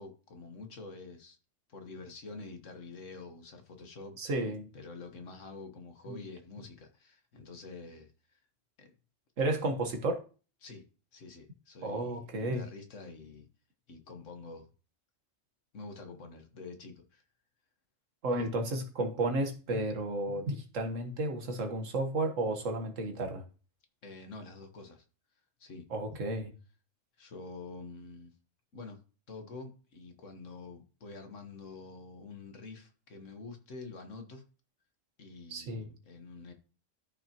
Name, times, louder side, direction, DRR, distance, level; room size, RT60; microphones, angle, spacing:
voice 1, 0.0-1.4 1.7-4.3 4.7-8.4 8.8-8.9 10.6-10.8 11.1-13.5 13.9-14.7 15.7-17.2 18.3-18.5 24.0-25.0 25.6-25.9 27.2-28.3 28.7-29.0 29.3-34.4 35.2-36.5, left 3 dB, 80° left, 1.7 m, -47 dB
voice 2, 4.2-4.7 6.1-6.2 9.4-10.2 11.8-12.7 18.2-23.4 25.9-26.5 35.5-35.9, right 2 dB, 85° right, 1.7 m, -32 dB
13.5 x 5.8 x 3.0 m
omnidirectional pair, 1.3 m